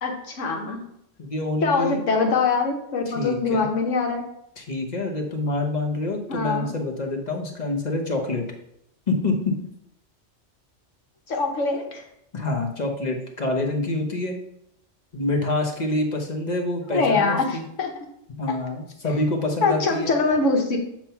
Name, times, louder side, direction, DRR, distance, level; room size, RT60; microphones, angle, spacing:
voice 1, 0.0-0.8 1.6-4.2 6.3-6.7 11.3-12.0 16.9-17.9 19.6-20.8, left 4 dB, 85° left, 2 dB, 1.4 m, -23 dB
voice 2, 1.2-2.0 3.1-3.7 4.6-8.4 9.1-9.5 12.3-14.4 15.1-17.6 18.4-20.1, left 2 dB, 40° left, 2 dB, 1.0 m, -26 dB
7.3 x 3.0 x 5.7 m, 0.76 s
omnidirectional pair, 1.3 m